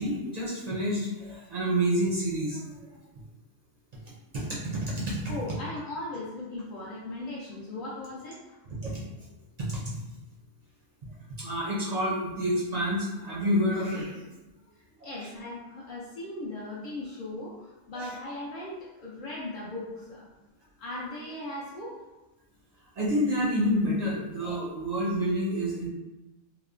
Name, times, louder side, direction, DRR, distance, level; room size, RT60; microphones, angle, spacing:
voice 1, 0.0-2.8 4.3-5.2 8.7-9.0 9.6-9.9 11.3-14.2 15.0-15.3 17.9-18.1 23.0-25.9, equal, 55° right, -6 dB, 0.4 m, -28 dB
voice 2, 5.3-8.5 15.0-20.3 20.8-22.0, left 2 dB, 55° left, -7 dB, 0.6 m, -38 dB
2.9 x 2.0 x 2.4 m, 1.0 s
omnidirectional pair, 1.2 m